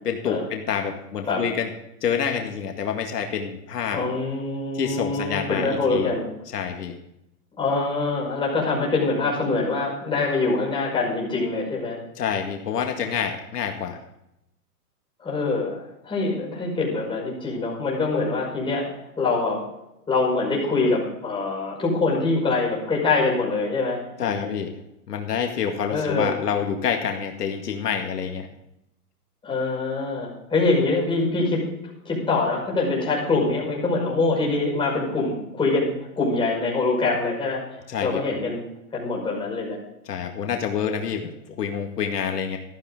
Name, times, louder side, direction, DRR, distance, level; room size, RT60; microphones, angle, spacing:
voice 1, 0.1-1.7 2.0-4.0 4.7-6.1 6.5-6.9 12.2-14.0 24.2-24.7 25.1-28.5 37.9-38.2 40.1-42.6, left 7 dB, 80° left, 3 dB, 2.1 m, -27 dB
voice 2, 3.9-6.3 7.6-12.0 15.2-19.6 20.1-24.5 25.9-26.4 29.4-31.6 32.1-37.7 38.0-38.6 38.9-39.8, left 3 dB, 10° left, -4 dB, 5.6 m, -24 dB
13.5 x 13.0 x 3.7 m, 0.83 s
hypercardioid pair, 145°, 47 cm